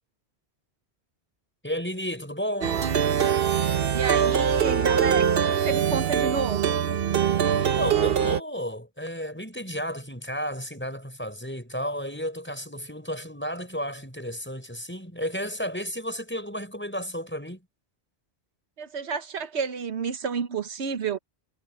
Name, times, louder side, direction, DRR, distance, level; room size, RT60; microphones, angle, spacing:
voice 1, 1.6-2.8 7.6-17.6, equal, 10° left, 6.5 m, -33 dB
Plucked string instrument, 2.6-8.4, right 8 dB, 60° right, 1.0 m, -23 dB
voice 2, 3.9-6.8 18.8-21.2, right 6 dB, 80° right, 1.3 m, -30 dB
omnidirectional pair, 1.1 m